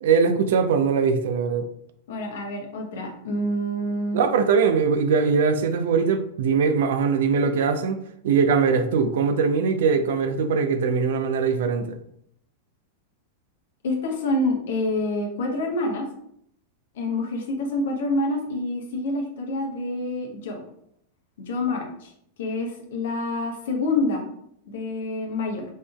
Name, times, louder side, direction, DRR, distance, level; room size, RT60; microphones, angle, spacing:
voice 1, 0.0-1.7 4.1-11.9, right 5 dB, 60° right, 9 dB, 0.5 m, -21 dB
voice 2, 2.1-4.2 13.8-16.1 16.9-20.6 21.4-22.1 22.4-24.3 24.6-25.7, left 2 dB, 60° left, 2 dB, 1.0 m, -27 dB
5.1 x 3.8 x 2.3 m, 0.71 s
figure-of-eight pair, 90°, 0 cm